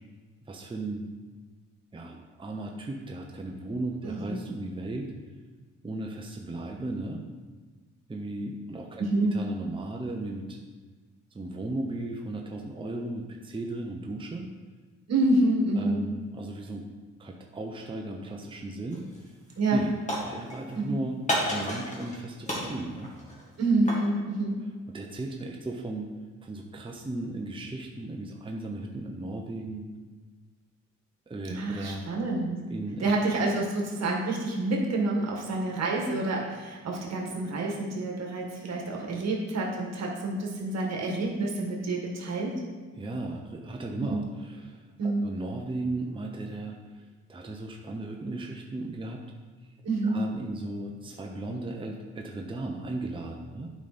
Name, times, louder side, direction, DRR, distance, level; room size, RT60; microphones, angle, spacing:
voice 1, 0.5-1.0 1.9-5.1 5.8-7.2 8.1-10.6 11.3-14.5 15.8-16.9 17.2-19.0 19.7-19.9 20.3-21.2 21.4-23.1 24.9-26.1 26.4-29.9 31.3-32.0 32.7-33.1 42.9-49.2 50.0-53.7, right 2 dB, 15° right, 1 dB, 0.9 m, -36 dB
voice 2, 4.0-4.5 9.0-9.3 15.1-16.0 19.6-19.8 20.8-20.9 23.6-24.6 31.5-32.6 33.0-42.5 44.1-44.2 45.0-45.3 49.8-50.2, right 2 dB, 60° right, -1 dB, 2.0 m, -28 dB
sound 1, 18.9-19.2 19.5-20.8 21.3-22.2 22.5-24.1, equal, 25° left, 2.4 m, -32 dB
9.3 x 5.2 x 4.3 m, 1.4 s
cardioid pair, 90°, 30 cm